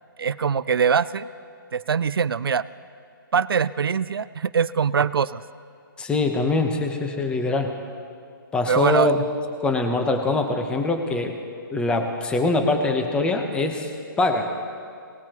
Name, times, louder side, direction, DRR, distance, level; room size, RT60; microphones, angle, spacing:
voice 1, 0.2-1.3 1.7-2.7 3.3-5.4 8.7-9.1, right 6 dB, 90° right, 16 dB, 0.4 m, -22 dB
voice 2, 6.0-7.7 8.5-9.2 9.6-11.4 11.7-13.9 14.2-14.5, left 2 dB, 10° left, 5 dB, 1.0 m, -23 dB
23.5 x 19.5 x 3.0 m, 2.4 s
hypercardioid pair, 150°, 12 cm